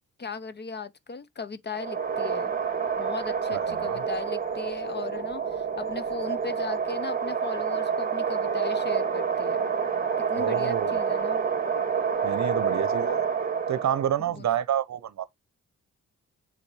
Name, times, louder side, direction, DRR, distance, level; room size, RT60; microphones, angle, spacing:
voice 1, 0.2-2.5 3.0-9.7 10.2-11.4 14.2-14.5, left 4 dB, 35° left, 0.7 m, -37 dB
sound 1, 1.7-14.2, right 6 dB, 30° right, 1.0 m, -28 dB
voice 2, 3.5-4.0 10.4-11.0 12.2-13.3 13.7-15.2, right 10 dB, 60° right, 0.8 m, -28 dB
7.0 x 4.2 x 3.2 m
cardioid pair, 70°, 31 cm